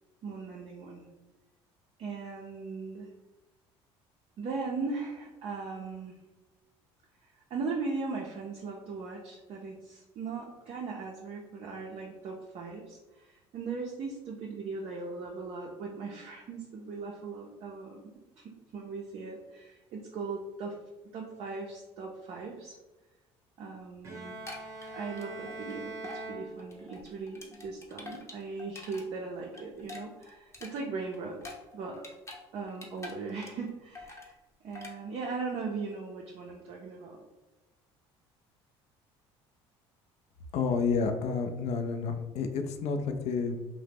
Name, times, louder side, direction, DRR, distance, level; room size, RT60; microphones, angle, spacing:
voice 1, 0.2-1.1 2.0-3.1 4.4-6.2 7.2-18.0 18.4-20.8 21.1-22.8 23.6-24.4 25.0-31.4 31.7-32.0 32.5-34.4 34.6-37.2, right 4 dB, 50° right, -1 dB, 0.4 m, -38 dB
Bowed string instrument, 24.0-27.2, right 2 dB, 25° right, 0.8 m, -43 dB
sound 1, 24.3-25.7 26.0-26.2 26.6-29.0 29.4-32.4 32.7-33.7 33.9-34.3 34.7-34.9, left 3 dB, 20° left, 0.7 m, -46 dB
voice 2, 40.5-43.6, left 5 dB, 55° left, 6 dB, 0.4 m, -30 dB
2.7 x 2.0 x 3.4 m, 1.1 s
hypercardioid pair, 70°, 13 cm